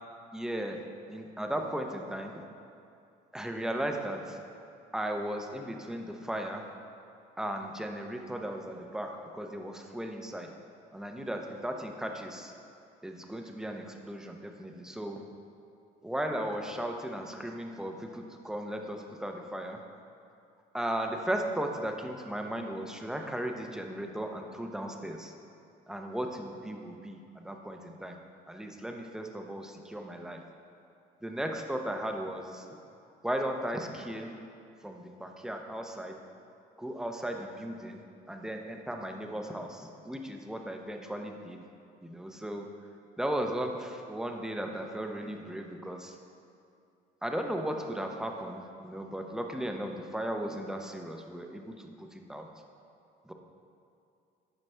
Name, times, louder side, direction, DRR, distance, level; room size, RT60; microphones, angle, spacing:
voice 1, 0.3-0.8 1.1-2.4 3.3-4.4 4.9-6.7 7.4-10.5 10.9-12.5 13.0-15.2 16.0-19.8 20.7-25.3 25.9-28.2 28.5-30.4 31.2-32.7 33.2-34.3 34.8-36.2 36.8-38.0 38.3-41.6 42.0-42.7 43.2-46.2 47.2-52.5 53.3-53.4, right 1 dB, 5° right, 3 dB, 0.6 m, -36 dB
10.5 x 4.9 x 3.3 m, 2.5 s
cardioid pair, 110°, 17 cm